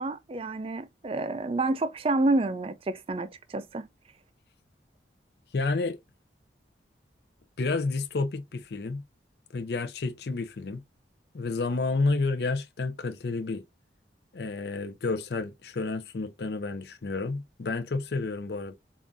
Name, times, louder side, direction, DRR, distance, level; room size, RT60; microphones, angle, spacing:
voice 1, 0.0-3.9, right 2 dB, 30° right, 0.4 m, -29 dB
voice 2, 5.5-6.0 7.6-9.0 9.5-10.8 11.3-13.6 14.3-18.7, left 3 dB, 60° left, 0.5 m, -30 dB
7.0 x 2.5 x 2.6 m
head